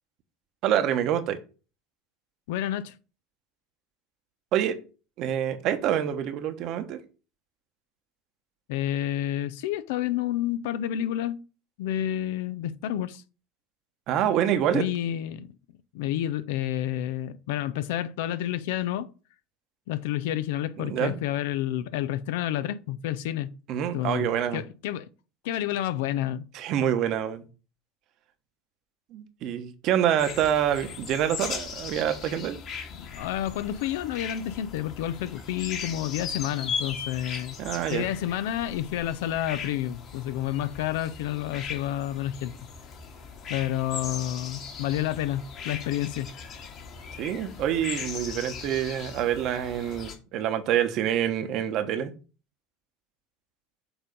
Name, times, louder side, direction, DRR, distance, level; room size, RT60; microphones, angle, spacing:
voice 1, 0.6-1.4 4.5-4.8 5.2-7.0 14.1-14.8 20.8-21.1 23.7-24.6 26.5-27.4 29.1-32.6 37.6-38.1 47.1-52.1, right 10 dB, 55° right, 1.1 m, -26 dB
voice 2, 2.5-2.9 8.7-11.4 11.8-13.2 14.7-15.5 15.9-19.1 19.9-23.5 23.9-25.1 25.4-26.5 32.9-37.6 37.9-42.5 43.5-46.3, left 12 dB, 70° left, 0.6 m, -29 dB
sound 1, 30.2-50.1, left 6 dB, 50° left, 2.0 m, -39 dB
7.0 x 3.7 x 5.3 m
hypercardioid pair, 85°, 0 cm